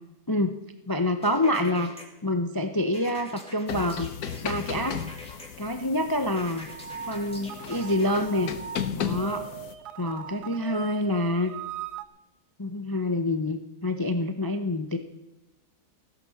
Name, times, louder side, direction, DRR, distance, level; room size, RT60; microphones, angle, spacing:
voice 1, 0.3-0.6 0.9-1.9 2.2-4.1 4.4-5.0 5.6-6.7 7.1-8.5 8.9-9.5 10.0-11.5 12.6-15.0, left 1 dB, 30° left, 7 dB, 0.3 m, -27 dB
sound 1, 1.2-2.0 2.9-5.5 6.4-8.1, left 1 dB, 5° left, 2.6 m, -45 dB
sound 2, 3.7-9.7, left 8 dB, 70° left, 1.3 m, -36 dB
sound 3, 6.7-12.0, right 9 dB, 75° right, 1.3 m, -40 dB
16.0 x 10.0 x 6.5 m, 0.95 s
omnidirectional pair, 1.8 m